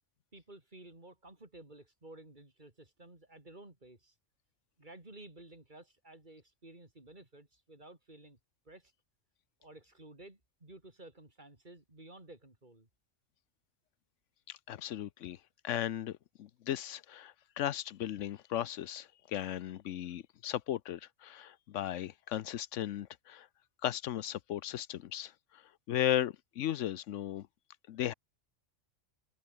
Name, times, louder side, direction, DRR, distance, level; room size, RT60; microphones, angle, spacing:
voice 1, 0.3-4.1 4.8-8.4 8.7-8.9 9.6-12.9, right 2 dB, 40° right, 4.0 m, -54 dB
voice 2, 14.5-15.4 15.6-23.5 23.8-27.5 27.9-28.1, left 11 dB, 80° left, 1.0 m, -36 dB
omnidirectional pair, 1.3 m